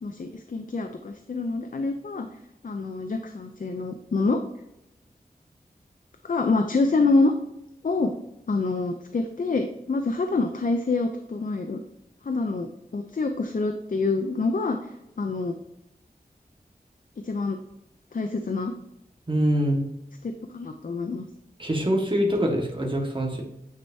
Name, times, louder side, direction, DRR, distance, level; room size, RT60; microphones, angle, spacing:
voice 1, 0.0-2.3 2.6-4.4 6.2-7.3 7.8-8.2 8.5-11.8 12.2-12.7 12.9-15.6 17.2-17.6 18.1-18.8 20.2-21.3, left 3 dB, 60° left, 5 dB, 0.6 m, -26 dB
voice 2, 19.3-19.8 21.6-23.4, equal, 30° right, 0 dB, 1.7 m, -24 dB
9.5 x 4.6 x 2.8 m, 0.86 s
wide cardioid pair, 75°, 16 cm